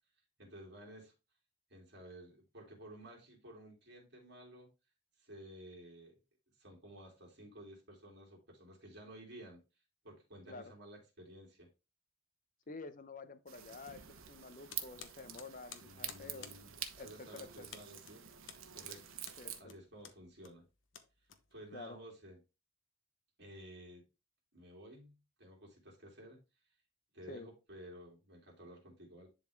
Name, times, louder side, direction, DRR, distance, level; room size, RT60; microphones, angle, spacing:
voice 1, 0.4-1.1 1.7-4.7 5.2-6.1 6.6-9.6 10.0-11.7 15.8-18.2 18.7-19.1 19.6-20.6 21.5-22.4 23.4-24.0 24.5-26.4 27.1-29.3, right 1 dB, 55° right, 3.0 m, -54 dB
voice 2, 12.7-16.5 17.0-17.7 19.4-19.7 21.7-22.0 27.3-27.5, left 3 dB, 40° left, 0.7 m, -49 dB
sound 1, 13.5-19.6, right 10 dB, 85° right, 1.1 m, -47 dB
sound 2, 14.7-21.9, left 8 dB, 70° left, 1.0 m, -55 dB
10.5 x 4.1 x 3.5 m
head